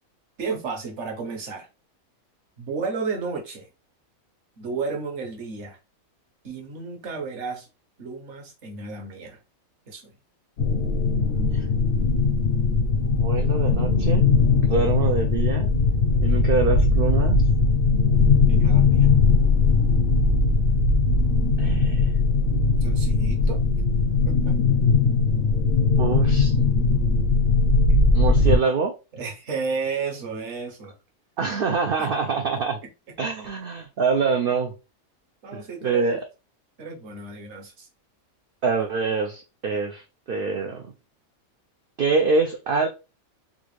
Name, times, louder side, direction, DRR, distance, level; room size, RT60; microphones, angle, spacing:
voice 1, 0.4-1.7 2.6-3.7 4.6-5.8 6.4-7.7 8.0-9.4 9.9-10.1 18.5-19.1 22.8-23.6 24.2-24.5 29.1-31.0 32.0-32.1 35.4-36.2 36.8-37.9, right 4 dB, 55° right, 1.2 m, -32 dB
sound 1, 10.6-28.6, left 4 dB, 60° left, 0.6 m, -20 dB
voice 2, 13.0-14.3 14.6-15.7 16.2-17.4 21.6-22.1 26.0-26.6 28.1-29.0 31.4-32.8 33.2-34.7 35.5-36.2 38.6-40.9 42.0-42.9, right 4 dB, 80° right, 0.5 m, -25 dB
3.7 x 2.3 x 3.1 m
omnidirectional pair, 1.5 m